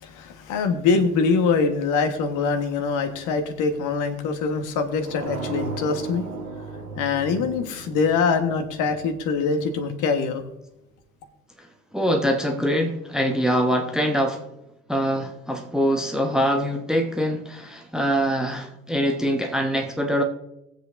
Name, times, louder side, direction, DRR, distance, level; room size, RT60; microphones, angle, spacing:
voice 1, 0.0-6.3 7.0-10.5, left 5 dB, 50° left, 7 dB, 1.5 m, -23 dB
sound 1, 5.0-9.7, right 4 dB, 85° right, 1.4 m, -36 dB
voice 2, 11.9-14.5 14.9-20.2, equal, ahead, 3 dB, 1.1 m, -23 dB
20.0 x 7.8 x 2.7 m, 0.90 s
figure-of-eight pair, 65°, 40 cm